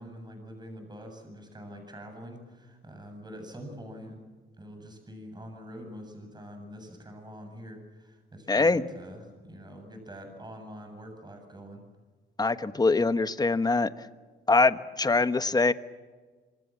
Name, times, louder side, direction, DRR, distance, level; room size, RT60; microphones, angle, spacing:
voice 1, 0.0-4.2 4.6-11.8, equal, 20° right, 5 dB, 7.9 m, -45 dB
voice 2, 8.5-8.8 12.4-13.9 14.5-15.7, left 3 dB, 20° left, 12 dB, 1.2 m, -23 dB
27.5 x 24.5 x 7.5 m, 1.4 s
cardioid pair, 110°, 20 cm